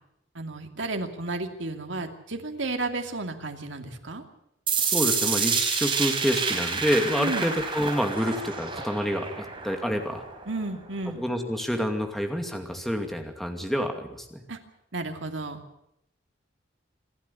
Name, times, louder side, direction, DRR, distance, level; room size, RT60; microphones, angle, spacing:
voice 1, 0.3-4.2 7.2-7.5 10.5-11.2 14.5-14.6 14.9-15.6, right 2 dB, 85° right, 5 dB, 2.6 m, -32 dB
sound 1, 4.7-10.7, right 5 dB, 30° right, 4.7 m, -28 dB
voice 2, 4.8-10.2 11.2-14.4, equal, ahead, 4 dB, 2.5 m, -28 dB
26.5 x 11.5 x 9.9 m, 0.80 s
head